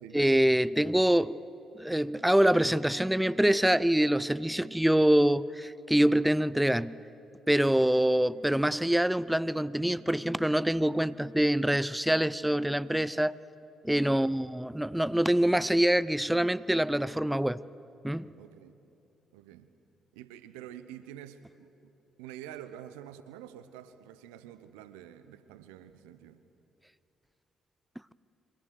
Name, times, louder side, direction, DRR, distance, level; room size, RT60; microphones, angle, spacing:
voice 1, 0.1-1.4 1.8-7.0 7.5-13.4 13.8-17.6 18.0-18.3, right 1 dB, 5° right, 0.7 m, -25 dB
voice 2, 18.4-18.8 19.3-19.7 20.1-21.9 22.2-26.4, right 11 dB, 80° right, 1.0 m, -47 dB
28.5 x 24.5 x 6.5 m
hypercardioid pair, 45°, 0 cm